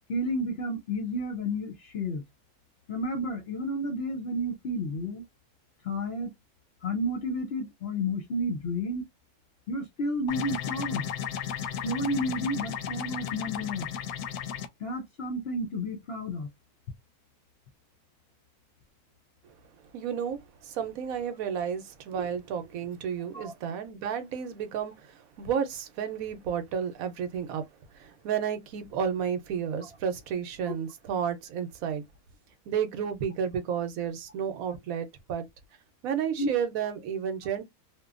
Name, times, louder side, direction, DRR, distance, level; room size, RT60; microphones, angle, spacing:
voice 1, 0.1-2.2 2.9-5.2 5.8-6.3 6.8-9.0 9.7-11.1 11.8-13.9 14.8-16.5 23.3-23.5 36.4-36.5, equal, 60° left, 0.6 m, -31 dB
sound 1, 10.3-14.7, left 8 dB, 85° left, 1.1 m, -34 dB
voice 2, 19.9-27.6 27.9-32.0 32.7-35.5 36.0-37.6, right 7 dB, 70° right, 1.0 m, -32 dB
2.9 x 2.2 x 2.4 m
omnidirectional pair, 1.6 m